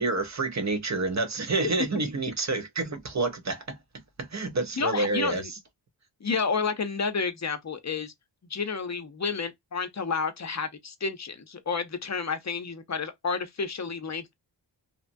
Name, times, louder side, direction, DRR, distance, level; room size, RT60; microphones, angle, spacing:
voice 1, 0.0-3.8 4.2-5.6, right 3 dB, 40° right, 0.8 m, -28 dB
voice 2, 4.8-5.5 6.2-8.1 8.5-14.3, left 5 dB, 40° left, 0.6 m, -30 dB
2.9 x 2.2 x 2.5 m
wide cardioid pair, 90°, 45 cm